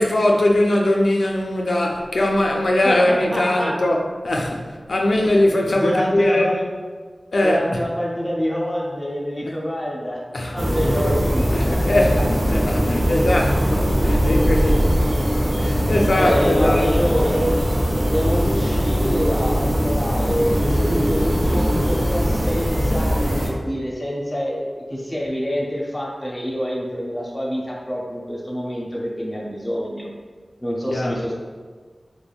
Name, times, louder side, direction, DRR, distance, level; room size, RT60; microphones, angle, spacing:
voice 1, 0.0-6.5 7.3-7.8 10.3-10.6 11.5-15.0 15.2-16.9 30.9-31.2, left 1 dB, 75° left, 1 dB, 0.3 m, -21 dB
voice 2, 2.8-3.7 5.7-6.7 7.4-10.2 10.5-12.0 16.1-17.6 18.1-30.1 30.6-31.4, equal, 20° left, -3 dB, 0.5 m, -26 dB
sound 1, 10.6-23.5, equal, 55° right, 0.6 m, -20 dB
3.3 x 2.0 x 2.3 m, 1.5 s
wide cardioid pair, 75°, 0 cm